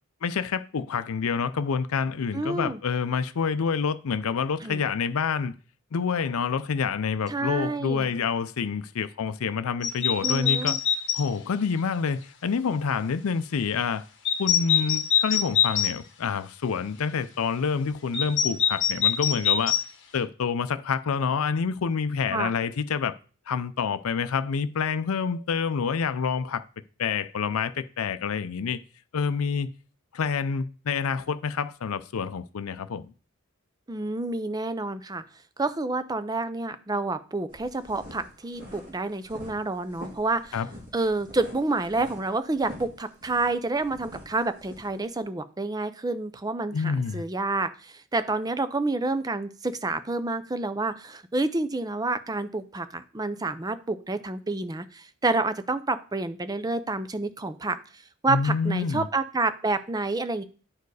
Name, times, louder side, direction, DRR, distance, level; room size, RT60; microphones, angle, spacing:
voice 1, 0.2-5.5 5.9-10.8 11.1-14.0 14.4-19.8 20.1-23.1 23.5-26.6 27.0-28.8 29.1-29.7 30.1-33.1 40.5-40.7 46.7-47.2 58.3-59.1, left 6 dB, 80° left, 0.5 m, -27 dB
voice 2, 2.3-2.8 4.6-4.8 7.3-8.1 10.2-10.8 22.3-22.5 33.9-35.2 35.6-40.6 40.9-57.8 58.2-60.4, right 3 dB, 20° right, 0.5 m, -29 dB
sound 1, 9.8-11.3 14.2-15.9 18.1-19.8, left 9 dB, 60° left, 1.2 m, -24 dB
sound 2, 37.5-45.1, left 1 dB, 40° right, 3.3 m, -45 dB
10.5 x 4.6 x 4.8 m
head